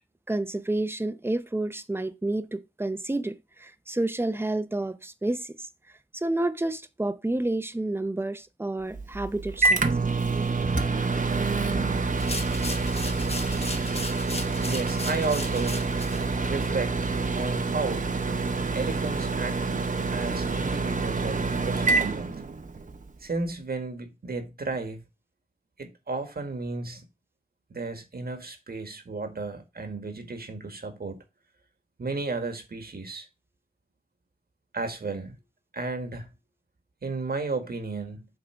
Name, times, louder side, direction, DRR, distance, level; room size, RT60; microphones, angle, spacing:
voice 1, 0.3-5.7 6.1-9.8 10.7-10.9, right 2 dB, 15° right, 0.7 m, -30 dB
Microwave oven, 8.9-23.0, right 3 dB, 55° right, 1.0 m, -27 dB
sound 1, 12.1-16.2, left 2 dB, 40° left, 1.0 m, -37 dB
voice 2, 14.5-15.8 16.4-17.0 17.3-18.1 18.7-19.6 20.1-22.4 23.2-25.0 25.8-27.0 27.7-31.2 32.0-33.3 34.7-35.4 35.7-36.3 37.0-38.3, right 3 dB, 70° right, 1.7 m, -33 dB
6.9 x 3.8 x 6.1 m
wide cardioid pair, 60°, 16 cm